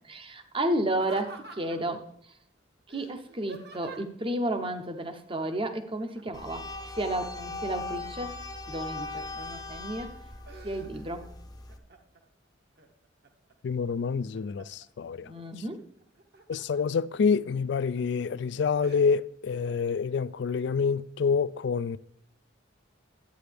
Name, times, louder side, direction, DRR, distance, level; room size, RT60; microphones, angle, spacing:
voice 1, 0.0-2.0 2.9-6.7 6.9-8.4 8.7-10.1 10.6-11.3 15.2-15.8, right 1 dB, 25° right, 0.7 m, -32 dB
Laughter, 0.9-2.0 2.9-4.3 6.0-6.5 6.8-8.4 9.0-9.6 10.0-11.3 11.7-12.3 12.8-13.5 14.0-14.9 16.0-16.8 17.3-17.4 18.0-18.2 18.8-19.0, right 3 dB, 55° right, 1.1 m, -48 dB
sound 1, 6.3-11.8, left 2 dB, 20° left, 0.7 m, -39 dB
voice 2, 13.6-15.3 16.5-22.0, left 5 dB, 60° left, 0.3 m, -27 dB
11.5 x 9.1 x 3.4 m
head